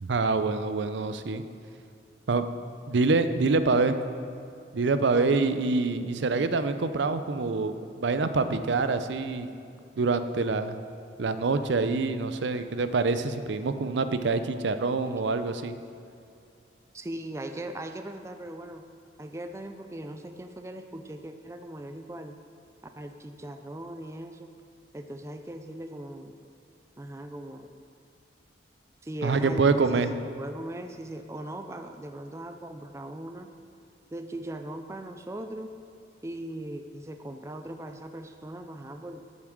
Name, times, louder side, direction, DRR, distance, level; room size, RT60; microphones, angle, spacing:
voice 1, 0.0-1.4 2.3-2.5 2.9-4.0 4.7-9.5 10.0-10.8 11.2-15.7 29.2-30.1, right 3 dB, 75° right, 11 dB, 0.5 m, -26 dB
voice 2, 16.9-18.9 19.2-22.3 23.0-24.5 24.9-26.3 27.0-27.7 29.0-33.5 34.1-35.7 36.2-39.3, right 1 dB, 15° right, 6 dB, 0.4 m, -39 dB
8.0 x 7.3 x 6.3 m, 2.5 s
head